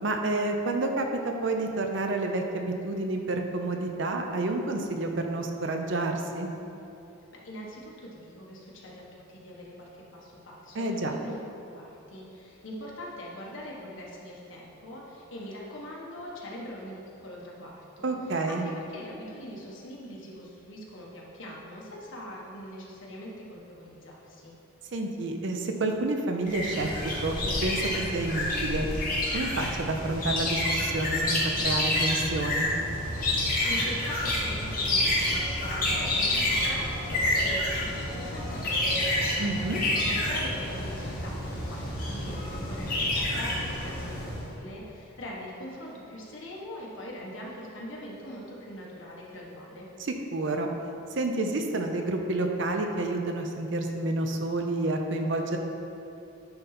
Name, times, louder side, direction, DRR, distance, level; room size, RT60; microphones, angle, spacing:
voice 1, 0.0-6.5 10.8-11.1 18.0-18.7 24.9-26.9 27.2-27.4 27.6-28.9 29.3-32.7 39.4-39.8 50.0-50.7 51.2-55.6, right 2 dB, 60° right, 4 dB, 0.6 m, -29 dB
voice 2, 7.4-11.4 11.7-24.5 33.6-49.9, equal, 65° left, -3 dB, 1.3 m, -42 dB
sound 1, 26.5-44.5, left 1 dB, 45° left, 1.6 m, -28 dB
9.6 x 4.0 x 4.2 m, 2.8 s
head